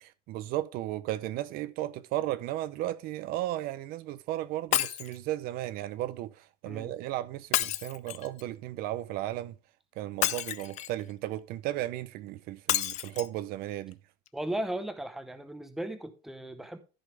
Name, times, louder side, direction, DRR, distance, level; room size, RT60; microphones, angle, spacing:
voice 1, 0.0-9.5 10.0-14.0, right 14 dB, 55° right, 0.5 m, -35 dB
Shatter, 4.7-5.2 7.5-8.4 10.2-11.0 12.7-13.3 13.9-14.0 14.3-14.4, left 14 dB, 40° left, 0.5 m, -30 dB
voice 2, 14.3-16.8, right 1 dB, ahead, 0.8 m, -36 dB
13.5 x 5.5 x 3.3 m
cardioid pair, 165°, 18 cm